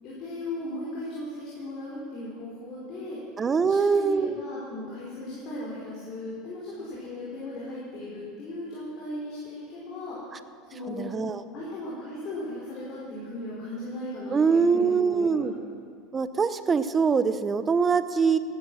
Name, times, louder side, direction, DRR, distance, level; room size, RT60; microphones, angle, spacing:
voice 1, 0.0-3.2 3.6-10.2 10.7-11.0 11.5-15.5, left 1 dB, 50° left, -7 dB, 4.9 m, -37 dB
voice 2, 3.4-4.3 10.9-11.4 14.3-15.5 16.1-18.4, right 5 dB, 25° right, 12 dB, 0.7 m, -23 dB
16.0 x 10.5 x 6.4 m, 2.2 s
supercardioid pair, 120°, 0 cm